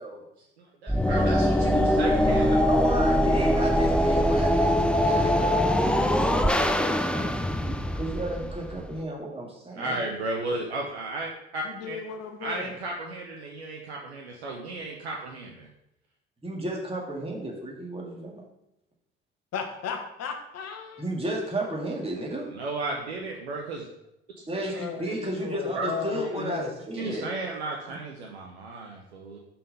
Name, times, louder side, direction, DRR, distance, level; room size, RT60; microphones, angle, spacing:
voice 1, 0.4-2.6 9.7-12.0 12.4-15.7 22.5-23.9 25.1-25.2 25.8-25.9 26.9-29.4, right 2 dB, 85° right, 0 dB, 0.7 m, -34 dB
sound 1, 0.9-9.0, left 1 dB, 5° left, 0.5 m, -23 dB
voice 2, 2.6-10.0 16.4-18.4 21.0-22.5 24.5-27.3, right 1 dB, 20° right, -2 dB, 2.1 m, -33 dB
voice 3, 11.6-12.7 19.5-21.0 24.7-26.7, left 6 dB, 50° left, 5 dB, 1.2 m, -35 dB
5.5 x 4.3 x 5.2 m, 0.82 s
figure-of-eight pair, 50°, 32 cm